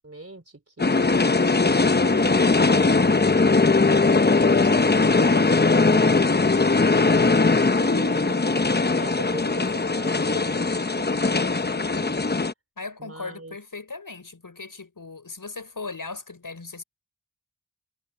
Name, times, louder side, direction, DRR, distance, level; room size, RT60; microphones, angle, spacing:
voice 1, 0.0-3.9 4.5-8.7 9.0-12.2 13.0-13.6, right 2 dB, 45° right, 4.5 m, -41 dB
sound 1, 0.8-12.5, left 3 dB, 30° left, 0.8 m, -20 dB
voice 2, 12.8-16.8, left 3 dB, 70° left, 6.0 m, -38 dB
wide cardioid pair, 50°, 34 cm